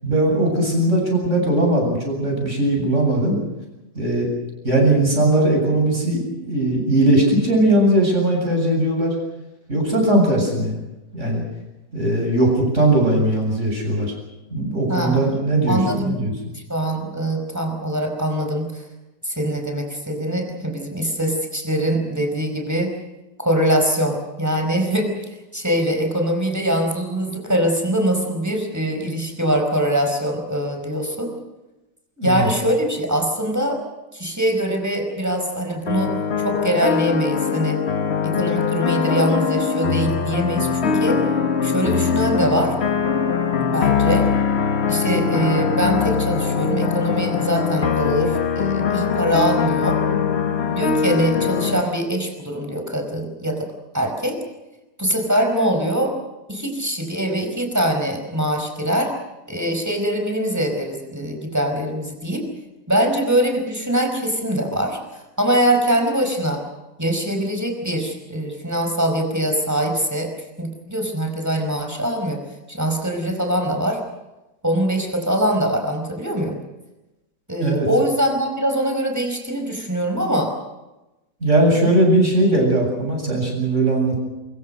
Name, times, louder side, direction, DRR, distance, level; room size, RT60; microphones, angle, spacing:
voice 1, 0.0-3.4 3.9-4.3 4.6-9.1 9.7-10.8 11.1-11.4 11.9-14.1 14.5-16.3 32.2-32.5 77.6-77.9 81.4-84.2, right 1 dB, 45° right, 1 dB, 8.4 m, -19 dB
voice 2, 14.9-15.3 15.7-16.2 16.5-18.8 19.2-22.9 23.4-25.1 25.5-31.3 32.2-33.8 34.1-36.1 36.4-37.8 38.2-41.2 41.6-42.7 43.7-44.3 44.9-50.0 50.7-53.7 53.9-54.4 55.0-56.2 56.5-59.1 59.5-62.4 62.9-66.6 67.0-70.3 70.6-72.4 72.7-74.0 74.6-76.6 77.5-80.5, right 1 dB, 10° right, 4 dB, 4.9 m, -23 dB
sound 1, 35.9-51.8, left 6 dB, 40° left, 1.2 m, -22 dB
24.0 x 23.0 x 6.5 m, 1.0 s
omnidirectional pair, 1.8 m